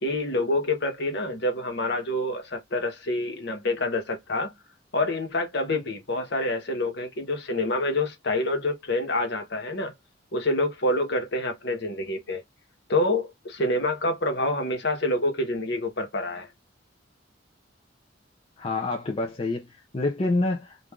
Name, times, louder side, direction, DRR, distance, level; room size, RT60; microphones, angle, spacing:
voice 1, 0.0-4.5 4.9-9.9 10.3-12.4 12.9-16.5, left 1 dB, 60° left, 1.2 m, -27 dB
voice 2, 18.6-20.8, left 2 dB, 30° left, 0.5 m, -27 dB
3.2 x 2.5 x 3.5 m
head